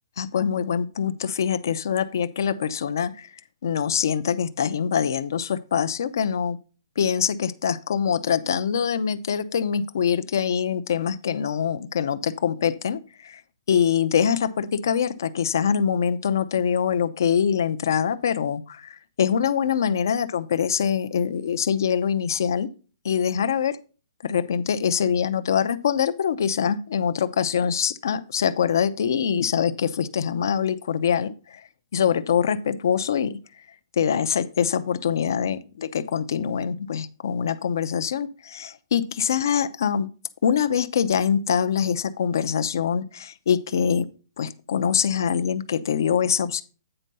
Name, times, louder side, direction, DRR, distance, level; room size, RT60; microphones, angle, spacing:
voice 1, 0.2-3.3 3.6-6.6 7.0-13.4 13.7-22.7 23.0-23.8 24.2-31.6 31.9-33.4 34.0-40.1 40.4-44.1 44.4-46.6, left 7 dB, 60° left, 11 dB, 0.6 m, -24 dB
8.9 x 4.6 x 5.3 m, 0.35 s
hypercardioid pair, 175°, 2 cm